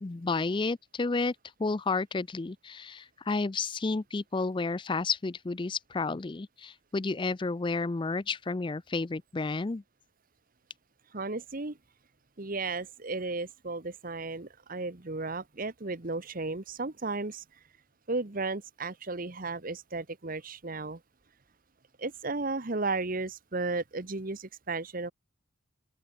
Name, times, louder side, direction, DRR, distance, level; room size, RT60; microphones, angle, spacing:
voice 1, 0.0-1.3 1.6-9.8, left 3 dB, 25° left, 0.4 m, -31 dB
voice 2, 11.1-11.8 12.4-17.4 18.1-21.0 22.0-25.1, right 3 dB, 45° right, 1.2 m, -34 dB
open air
head